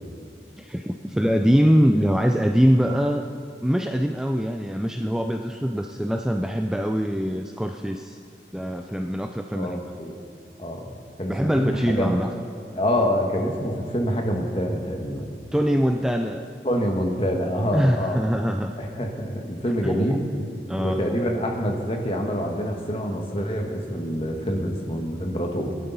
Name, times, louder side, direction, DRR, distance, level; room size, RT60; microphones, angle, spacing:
voice 1, 0.6-3.3 3.6-8.2 8.5-9.9 11.3-12.3 15.5-16.5 17.7-18.7 19.8-20.1 20.7-21.0, equal, 5° right, 4 dB, 0.3 m, -23 dB
voice 2, 9.5-10.1 10.6-12.1 12.7-15.3 16.6-18.2 18.8-20.2 20.8-25.7, equal, 30° left, 2 dB, 1.4 m, -26 dB
20.5 x 11.5 x 4.1 m, 2.4 s
head